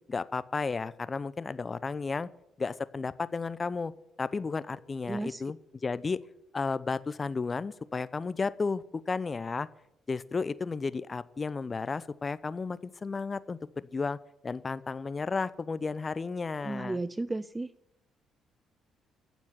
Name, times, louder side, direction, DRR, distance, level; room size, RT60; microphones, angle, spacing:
voice 1, 0.1-2.3 2.6-3.9 4.2-6.2 6.5-9.7 10.1-14.2 14.4-17.0, left 4 dB, 35° left, 17 dB, 0.8 m, -33 dB
voice 2, 5.1-5.4 16.6-17.7, right 2 dB, 20° right, 16 dB, 0.6 m, -33 dB
14.5 x 7.3 x 9.9 m, 0.83 s
hypercardioid pair, 50°, 0 cm